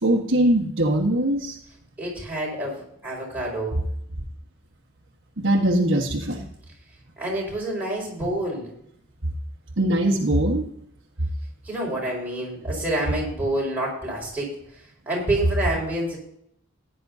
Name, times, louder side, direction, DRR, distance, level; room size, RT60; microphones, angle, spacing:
voice 1, 0.0-1.6 5.4-6.4 9.8-10.6, right 1 dB, 60° right, 1 dB, 1.4 m, -21 dB
voice 2, 2.0-3.8 7.2-8.7 11.6-14.6 15.1-16.2, right 1 dB, 10° right, -4 dB, 4.7 m, -28 dB
15.5 x 9.9 x 2.7 m, 0.73 s
head